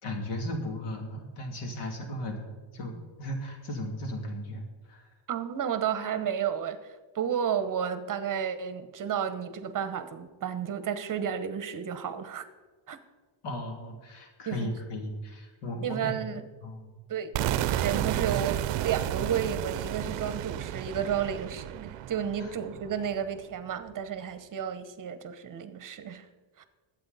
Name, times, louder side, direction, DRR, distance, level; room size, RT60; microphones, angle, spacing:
voice 1, 0.0-5.1 13.4-16.2 16.6-17.0 17.5-17.6 22.4-22.5, left 1 dB, 85° left, 2 dB, 3.0 m, -36 dB
voice 2, 5.3-6.8 7.1-12.4 12.9-13.0 14.5-14.7 15.8-16.4 17.1-17.3 17.7-26.3 26.6-26.7, right 8 dB, 40° right, 11 dB, 1.0 m, -32 dB
sound 1, 17.3-23.2, right 12 dB, 60° right, 0.6 m, -32 dB
20.5 x 8.4 x 4.1 m, 1.3 s
cardioid pair, 140°, 49 cm